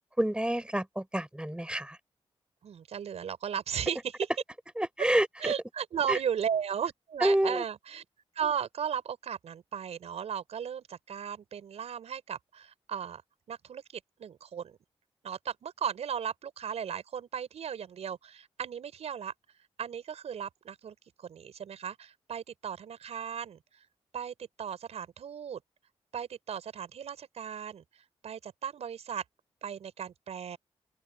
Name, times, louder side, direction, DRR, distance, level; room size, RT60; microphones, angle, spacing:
voice 1, 0.2-2.0 4.8-5.5 6.1-6.2 7.2-7.6, right 1 dB, 10° right, 6.6 m, -28 dB
voice 2, 2.6-4.2 5.4-8.0 8.3-13.2 13.5-13.8 14.2-14.8 15.2-19.3 19.8-23.8 24.1-25.6 26.1-29.2 29.6-30.6, right 8 dB, 80° right, 5.1 m, -36 dB
open air
cardioid pair, 55°, 11 cm